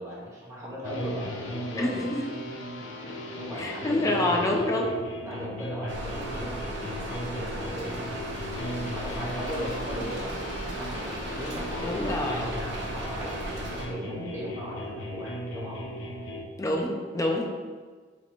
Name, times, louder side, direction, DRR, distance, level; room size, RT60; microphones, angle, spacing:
voice 1, 0.0-2.0 3.0-4.5 5.2-8.0 8.6-15.8, equal, 15° right, -7 dB, 1.1 m, -38 dB
sound 1, 0.8-16.4, equal, 85° left, 0.5 m, -37 dB
voice 2, 1.8-2.2 3.5-5.0 11.8-12.4 16.6-17.4, left 1 dB, 15° left, 0 dB, 0.5 m, -27 dB
Rain, 5.9-13.9, right 1 dB, 70° right, 0.8 m, -36 dB
2.9 x 2.9 x 4.3 m, 1.5 s
head